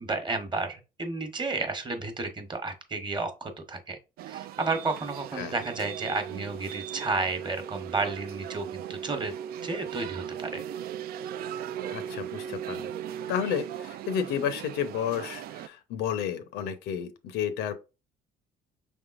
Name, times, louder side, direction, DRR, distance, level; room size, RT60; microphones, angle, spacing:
voice 1, 0.0-4.0 4.3-9.3 9.6-10.6, right 3 dB, 25° right, 1.1 m, -32 dB
sound 1, 4.2-15.7, right 13 dB, 65° right, 0.4 m, -41 dB
sound 2, 5.0-14.1, right 8 dB, 5° right, 0.6 m, -40 dB
voice 2, 11.9-12.9 13.3-17.7, left 8 dB, 85° left, 0.7 m, -31 dB
5.4 x 3.5 x 2.5 m
cardioid pair, 110°, 17 cm